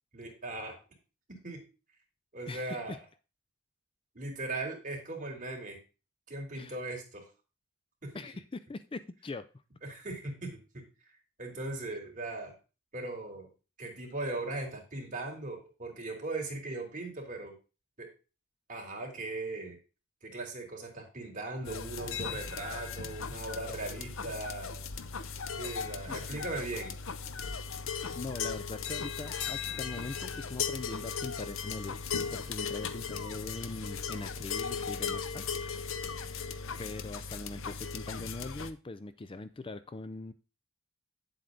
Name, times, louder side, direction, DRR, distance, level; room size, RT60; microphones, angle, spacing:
voice 1, 0.1-0.8 1.4-1.6 2.3-3.0 4.1-5.8 6.3-7.2 8.0-8.2 9.8-10.6 11.4-12.5 12.9-13.5 13.8-17.5 18.0-18.1 18.7-19.8 20.2-24.8 25.6-26.9, right 2 dB, 40° right, 0 dB, 3.3 m, -38 dB
voice 2, 2.5-3.0 6.5-6.8 8.1-9.5 26.1-26.4 28.1-32.0 32.3-35.6 35.9-36.5 36.8-40.3, left 3 dB, 25° left, 12 dB, 0.4 m, -42 dB
sound 1, 21.6-38.7, left 6 dB, 65° left, 0.8 m, -37 dB
9.5 x 7.7 x 3.8 m, 0.32 s
head